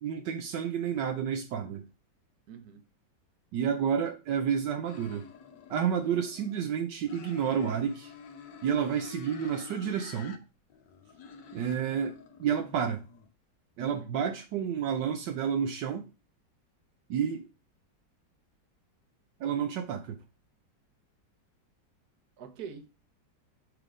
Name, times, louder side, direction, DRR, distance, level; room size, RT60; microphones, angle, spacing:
voice 1, 0.0-1.8 3.5-5.3 5.7-8.1 8.6-10.4 11.5-13.0 13.8-16.1 17.1-17.4 19.4-20.2, right 8 dB, 75° right, 1.4 m, -30 dB
voice 2, 2.5-2.8 13.8-14.1 22.4-23.0, right 7 dB, 60° right, 1.4 m, -45 dB
sound 1, 4.9-6.7 7.1-10.4 10.7-13.3, left 5 dB, 75° left, 1.6 m, -49 dB
6.6 x 3.8 x 4.8 m
omnidirectional pair, 1.9 m